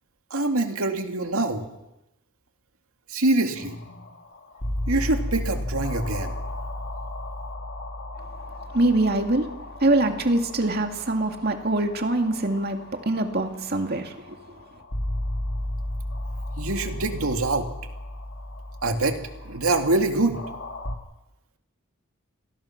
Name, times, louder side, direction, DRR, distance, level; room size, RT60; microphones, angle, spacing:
voice 1, 0.3-1.6 3.1-3.8 4.9-6.3 16.6-17.7 18.8-19.2 19.4-20.4, right 2 dB, 80° right, 5 dB, 2.4 m, -24 dB
sound 1, 3.5-21.0, left 1 dB, 60° left, 2.5 m, -34 dB
voice 2, 8.7-9.4 9.8-12.8 13.1-14.4, right 2 dB, 45° right, 4 dB, 2.3 m, -23 dB
27.0 x 19.0 x 6.0 m, 0.90 s
head